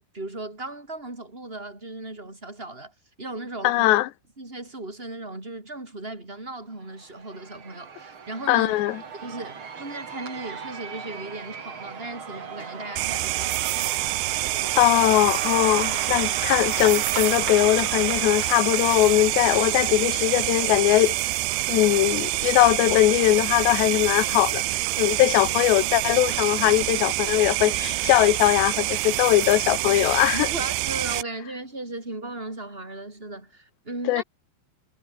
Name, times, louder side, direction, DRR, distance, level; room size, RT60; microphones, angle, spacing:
voice 1, 0.0-3.9 4.4-8.8 9.2-13.9 30.3-34.2, right 2 dB, 10° right, 5.9 m, -37 dB
voice 2, 3.6-4.1 8.5-9.0 14.8-21.2 21.7-24.6 25.0-30.5 34.1-34.2, left 16 dB, 75° left, 2.9 m, -20 dB
Cheering / Applause / Crowd, 6.9-21.6, right 6 dB, 35° right, 2.5 m, -37 dB
sound 1, 13.0-31.2, right 19 dB, 85° right, 3.2 m, -26 dB
omnidirectional pair, 5.4 m